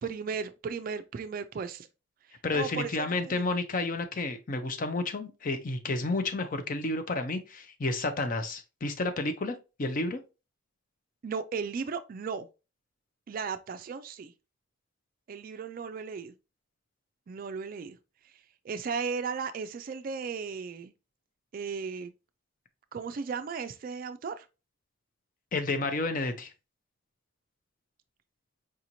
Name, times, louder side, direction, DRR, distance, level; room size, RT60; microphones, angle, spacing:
voice 1, 0.0-1.9 2.3-3.6 11.2-12.5 13.3-14.3 15.3-16.3 17.3-18.0 18.2-18.3 18.6-20.9 21.5-22.1 22.9-24.5, right 5 dB, 45° right, 0.3 m, -36 dB
voice 2, 2.4-10.2 25.5-26.5, left 2 dB, 40° left, 0.5 m, -31 dB
4.8 x 2.9 x 2.6 m
head